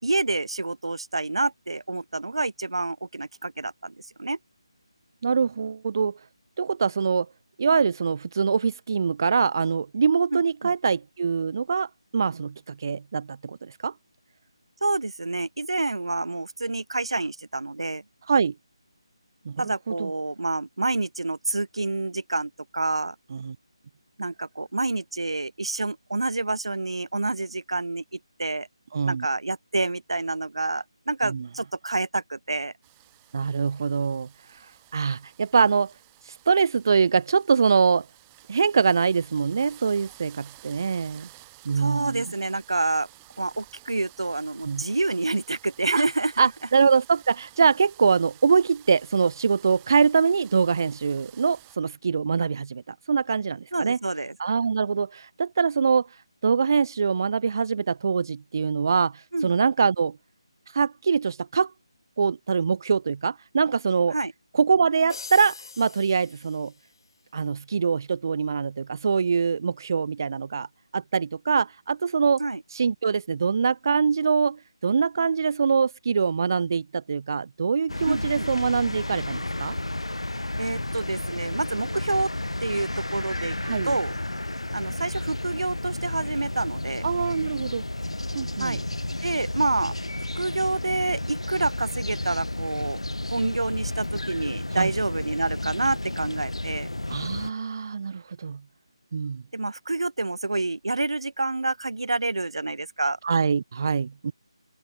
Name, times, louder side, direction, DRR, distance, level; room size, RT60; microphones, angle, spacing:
voice 1, 0.0-4.4 10.3-10.7 14.8-18.0 19.6-23.1 24.2-28.7 29.0-32.7 41.8-43.1 43.4-46.3 53.7-54.4 59.3-59.5 64.1-64.3 72.4-72.6 78.1-78.5 80.6-82.3 82.6-83.5 83.9-84.1 84.7-87.1 88.6-88.8 89.2-89.9 90.4-93.0 93.3-96.9 99.5-103.2, right 2 dB, 70° right, 3.0 m, -28 dB
voice 2, 5.2-6.1 6.6-7.3 7.6-13.9 18.3-18.5 19.5-20.1 23.3-23.6 28.9-29.3 31.2-31.5 33.3-35.9 36.2-38.0 38.5-41.3 41.7-42.2 44.7-44.8 45.9-46.0 46.4-54.0 54.4-60.2 60.7-61.7 62.2-64.1 64.5-66.7 67.3-70.7 70.9-72.4 72.7-79.8 83.6-83.9 87.0-87.8 88.3-88.8 94.7-94.9 97.1-98.6 99.1-99.4 103.2-104.3, right 5 dB, 40° right, 0.5 m, -24 dB
sound 1, 32.8-51.8, right 25 dB, 15° right, 3.8 m, -53 dB
sound 2, 65.1-67.2, left 4 dB, 50° left, 2.3 m, -43 dB
sound 3, 77.9-97.5, left 1 dB, 80° left, 3.0 m, -32 dB
open air
figure-of-eight pair, 155°, 3 cm